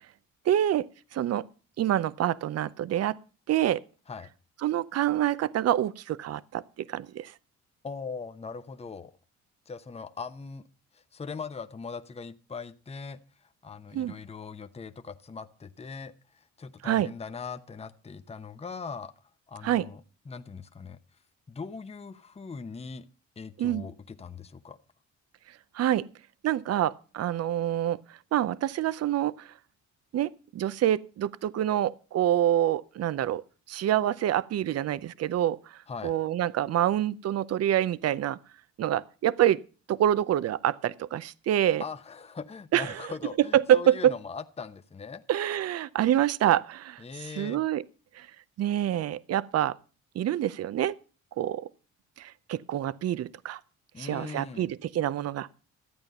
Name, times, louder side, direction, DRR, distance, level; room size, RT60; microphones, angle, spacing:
voice 1, 0.5-1.5 1.8-3.2 3.5-3.8 4.6-7.3 13.9-14.1 16.8-17.1 19.6-19.9 23.6-23.9 25.7-26.1 26.4-28.0 28.3-29.5 30.1-33.4 33.7-38.4 38.8-39.6 39.9-41.8 42.7-43.1 43.5-44.1 45.3-47.8 48.2-48.3 48.6-49.8 50.1-51.0 51.4-51.7 52.2-53.6 54.0-55.5, right 11 dB, 55° right, 0.6 m, -26 dB
voice 2, 7.8-9.1 9.7-10.6 10.9-13.2 13.6-19.1 19.5-20.0 20.3-21.0 21.5-23.1 23.4-24.8 35.9-36.2 41.8-45.2 47.0-47.6 53.9-54.7, left 5 dB, 20° left, 0.8 m, -40 dB
13.0 x 8.9 x 5.4 m
cardioid pair, 90°, 30 cm